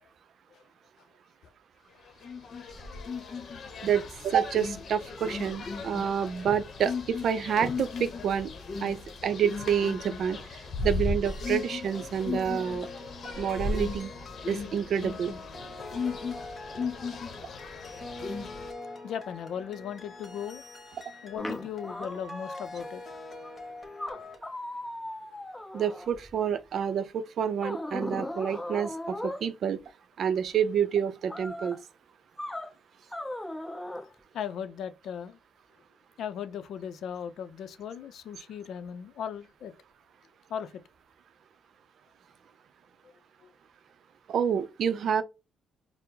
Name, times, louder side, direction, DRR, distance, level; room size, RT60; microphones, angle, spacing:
sound 1, 2.2-18.7, left 4 dB, 55° left, 0.9 m, -36 dB
voice 1, 3.8-8.5 8.8-12.9 13.2-14.1 14.5-15.3 25.7-29.8 30.2-31.8 44.3-45.2, right 8 dB, 60° right, 0.5 m, -28 dB
sound 2, 11.2-24.4, left 3 dB, 30° left, 1.5 m, -44 dB
voice 2, 19.0-20.6 21.2-23.0 34.3-35.4 36.2-39.7 40.5-40.7, left 8 dB, 75° left, 0.5 m, -37 dB
sound 3, 21.4-22.9 23.4-23.5 24.0-26.4 27.6-29.5 31.3-31.8 32.4-32.7 33.1-34.1, left 1 dB, 10° left, 0.7 m, -37 dB
4.4 x 2.0 x 3.9 m
cardioid pair, 90°, 0 cm